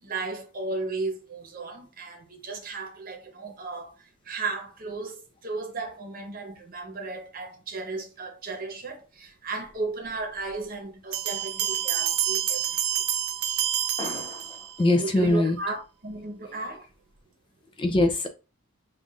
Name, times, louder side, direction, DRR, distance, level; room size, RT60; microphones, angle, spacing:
voice 1, 0.0-13.0 15.0-16.9, right 3 dB, 40° right, 0.9 m, -35 dB
sound 1, 11.1-14.9, right 11 dB, 85° right, 0.5 m, -28 dB
voice 2, 14.0-15.6 17.8-18.3, left 2 dB, 25° left, 0.3 m, -24 dB
5.5 x 2.4 x 2.5 m
head